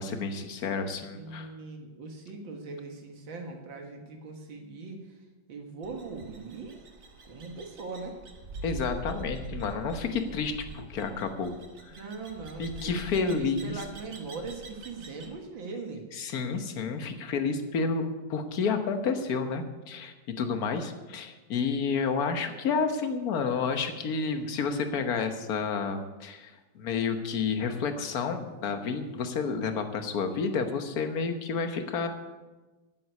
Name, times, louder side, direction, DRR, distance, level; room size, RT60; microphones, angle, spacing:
voice 1, 0.0-1.5 8.6-11.5 11.8-11.9 12.6-13.8 16.1-32.1, left 5 dB, 55° left, 7 dB, 1.5 m, -30 dB
voice 2, 1.1-5.0 5.5-6.8 7.2-8.2 11.9-16.0, right 3 dB, 85° right, 3 dB, 2.3 m, -40 dB
sound 1, 5.8-15.3, right 3 dB, 45° right, 1.7 m, -44 dB
11.0 x 7.8 x 9.4 m, 1.2 s
omnidirectional pair, 2.0 m